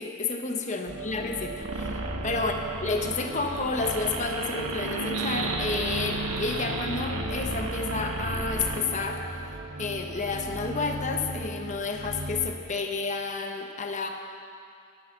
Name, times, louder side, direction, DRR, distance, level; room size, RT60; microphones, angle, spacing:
voice 1, 0.0-1.9 2.2-2.5 2.8-9.2 9.8-14.1, left 4 dB, 35° left, 3 dB, 1.0 m, -30 dB
sound 1, 0.9-12.5, right 1 dB, 70° right, 1.4 m, -38 dB
sound 2, 1.6-8.8, right 2 dB, 90° right, 1.4 m, -33 dB
17.0 x 10.5 x 6.6 m, 2.4 s
head